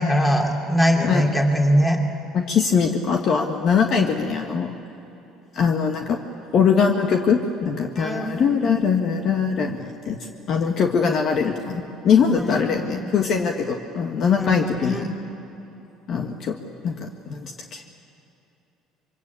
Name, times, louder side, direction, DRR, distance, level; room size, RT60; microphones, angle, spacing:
voice 1, 0.0-2.0 8.0-8.5 12.4-13.0 14.4-15.1, equal, 10° left, 2 dB, 2.9 m, -22 dB
voice 2, 2.3-4.7 5.5-6.2 6.5-10.2 10.5-15.0 16.1-16.5 16.8-17.8, left 6 dB, 45° left, 4 dB, 1.5 m, -22 dB
26.5 x 24.0 x 8.5 m, 2.9 s
cardioid pair, 145°, 0 cm